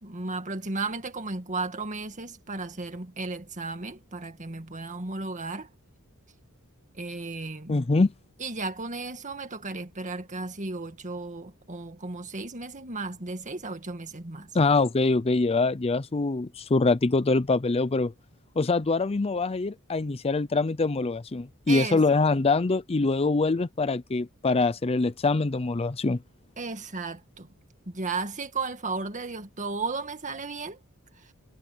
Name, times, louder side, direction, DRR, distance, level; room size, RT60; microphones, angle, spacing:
voice 1, 0.0-5.7 6.9-7.8 8.4-14.5 21.7-22.0 26.6-27.5 27.9-30.8 31.2-31.3, right 3 dB, 35° right, 1.9 m, -34 dB
voice 2, 7.7-8.1 14.5-18.1 18.6-26.2, left 3 dB, 25° left, 0.5 m, -24 dB
head